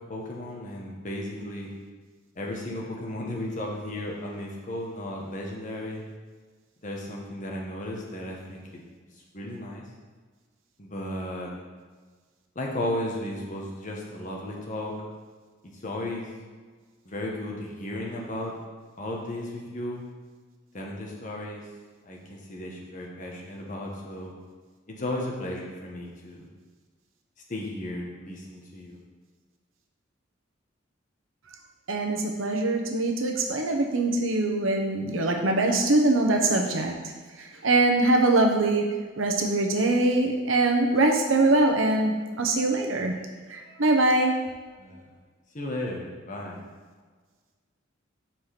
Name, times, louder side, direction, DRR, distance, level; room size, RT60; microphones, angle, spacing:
voice 1, 0.1-1.7 2.4-6.0 6.8-8.6 9.3-9.8 10.8-11.5 12.5-14.9 15.8-16.3 17.0-18.6 19.0-20.0 20.7-21.6 22.1-24.3 24.9-26.5 27.5-29.0 44.8-45.0 45.5-46.6, left 1 dB, 40° left, -1 dB, 1.1 m, -34 dB
voice 2, 31.9-37.1 37.4-38.9 39.2-43.2 43.5-44.3, right 2 dB, 90° right, 2 dB, 0.9 m, -23 dB
5.0 x 4.5 x 5.8 m, 1.5 s
head